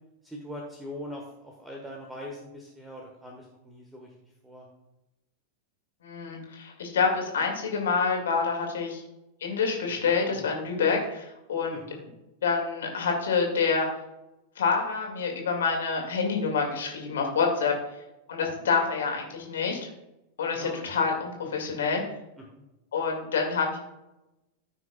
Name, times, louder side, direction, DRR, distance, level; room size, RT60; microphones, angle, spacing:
voice 1, 0.2-4.1 4.4-4.7 11.7-12.0 20.5-20.8 22.4-22.6, left 1 dB, 5° right, 0 dB, 1.3 m, -41 dB
voice 2, 6.0-9.0 9.4-11.8 12.4-13.9 14.6-17.7 18.3-19.8 20.4-22.0 22.9-23.8, left 5 dB, 60° left, 1 dB, 2.2 m, -27 dB
14.5 x 6.0 x 2.3 m, 0.93 s
figure-of-eight pair, 90°, 0 cm